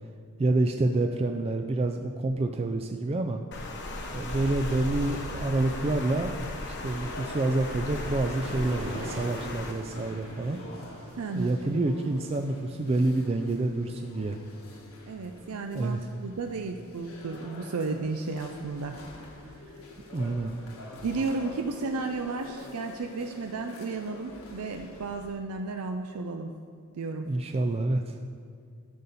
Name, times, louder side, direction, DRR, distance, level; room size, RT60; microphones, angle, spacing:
voice 1, 0.4-3.4 4.1-6.4 6.7-10.6 11.3-14.4 15.7-16.1 20.1-20.5 27.3-28.2, right 2 dB, 30° right, 4 dB, 0.4 m, -28 dB
Water, 3.5-9.7, left 2 dB, 55° left, 1.1 m, -36 dB
sound 1, 6.7-13.3, right 1 dB, 60° right, 1.1 m, -45 dB
sound 2, 6.8-25.3, left 2 dB, 70° left, 1.5 m, -47 dB
voice 2, 11.2-11.9 15.1-19.7 21.0-26.5 27.0-27.3, right 3 dB, 90° right, 5 dB, 0.5 m, -33 dB
13.0 x 6.8 x 4.1 m, 2.2 s
head